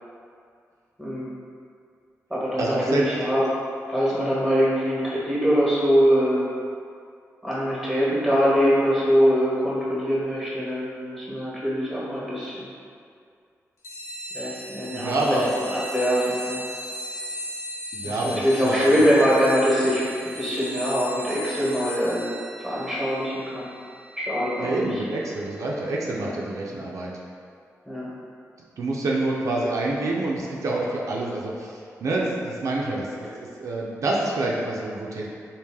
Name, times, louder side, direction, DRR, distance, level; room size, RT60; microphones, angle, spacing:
voice 1, 1.0-1.3 2.3-3.4 3.9-6.4 7.4-12.6 14.3-16.6 18.0-22.3 22.6-23.7 24.2-24.9 26.1-26.3 26.7-26.8 27.9-28.1, equal, ahead, -8 dB, 1.1 m, -23 dB
voice 2, 2.6-3.0 14.9-15.5 17.9-19.0 24.6-27.1 28.8-35.3, right 2 dB, 75° right, -3 dB, 0.4 m, -27 dB
sound 1, 13.8-25.9, equal, 70° left, 0.8 m, -37 dB
3.3 x 2.5 x 3.5 m, 2.3 s
wide cardioid pair, 95°, 5 cm